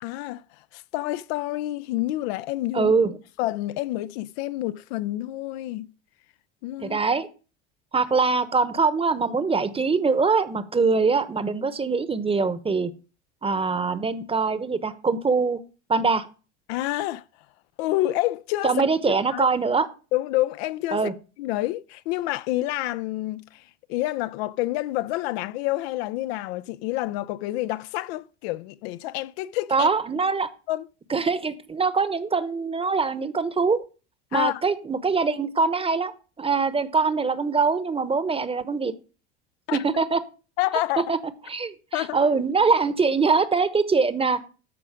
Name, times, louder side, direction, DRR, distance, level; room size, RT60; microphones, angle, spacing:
voice 1, 0.0-0.4 0.7-2.9 3.4-5.9 6.6-7.0 16.7-17.2 17.8-18.8 19.3-19.5 20.1-21.1 21.4-23.6 23.9-29.9 30.7-30.9 34.3-34.6 39.7-39.8 40.6-41.1 41.9-42.2, left 16 dB, 60° left, 0.5 m, -28 dB
voice 2, 2.7-3.1 6.8-7.3 7.9-12.9 13.4-15.6 15.9-16.3 18.6-19.9 20.9-21.1 29.7-30.5 31.1-33.8 34.3-36.1 36.4-38.9 39.7-40.2 41.1-41.2 41.5-44.4, right 4 dB, 15° right, 1.0 m, -23 dB
13.0 x 5.0 x 5.0 m
hypercardioid pair, 80°, 35 cm